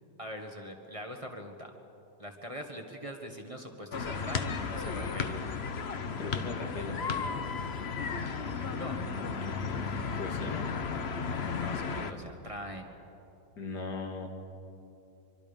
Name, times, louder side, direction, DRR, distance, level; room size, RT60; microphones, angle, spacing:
voice 1, 0.2-1.7 2.2-5.4 8.6-9.0 11.5-12.9, equal, 20° right, 3 dB, 1.6 m, -42 dB
sound 1, 3.9-12.1, left 5 dB, 45° left, 1.1 m, -34 dB
voice 2, 6.1-7.5 10.2-10.7 13.6-14.3, left 3 dB, 85° left, 2 dB, 2.7 m, -39 dB
24.5 x 24.0 x 5.3 m, 2.8 s
omnidirectional pair, 1.7 m